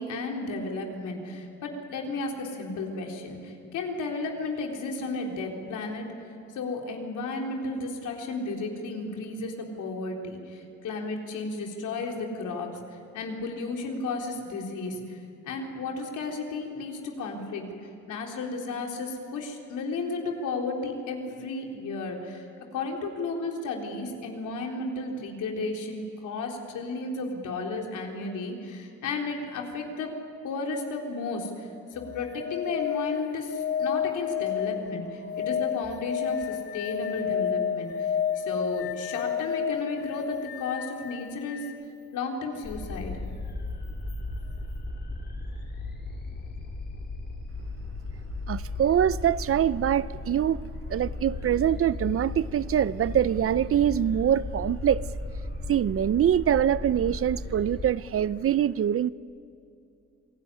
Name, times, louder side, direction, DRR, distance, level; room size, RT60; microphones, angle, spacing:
voice 1, 0.0-6.1 6.5-15.2 15.4-17.7 18.1-22.5 22.7-30.1 30.4-41.7 42.1-43.1, left 3 dB, 80° left, 1 dB, 3.9 m, -33 dB
sound 1, 31.9-41.8 44.1-44.2, left 8 dB, 50° left, 1.6 m, -31 dB
sound 2, 42.6-57.9, left 2 dB, 35° left, 3.8 m, -36 dB
voice 2, 48.5-50.6 50.9-55.0 55.7-59.1, right 10 dB, 50° right, 18 dB, 0.6 m, -24 dB
27.0 x 18.0 x 9.9 m, 2.6 s
cardioid pair, 90°, 30 cm